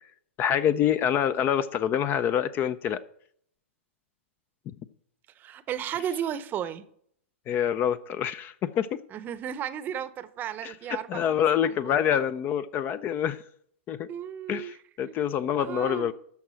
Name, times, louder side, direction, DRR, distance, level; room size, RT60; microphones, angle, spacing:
voice 1, 0.4-3.0 7.5-9.0 10.6-13.4 13.9-14.1 14.5-16.1, left 9 dB, 30° left, 0.5 m, -26 dB
voice 2, 5.4-6.8 9.1-12.2 14.1-14.7 15.0-16.1, right 9 dB, 25° right, 0.8 m, -35 dB
13.0 x 4.7 x 7.6 m
hypercardioid pair, 125°, 7 cm